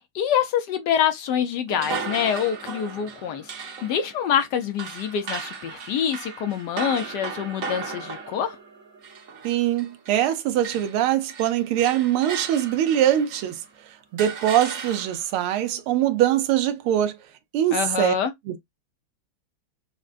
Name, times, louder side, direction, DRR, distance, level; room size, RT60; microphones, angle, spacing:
voice 1, 0.1-8.6 17.7-18.3, left 8 dB, 70° left, 1.0 m, -26 dB
sound 1, 1.7-10.3 10.6-13.6 14.2-15.4, right 5 dB, 50° right, 1.1 m, -36 dB
voice 2, 9.4-17.2 17.5-18.1 18.5-18.6, right 11 dB, 85° right, 1.6 m, -23 dB
6.2 x 2.2 x 2.4 m
omnidirectional pair, 2.3 m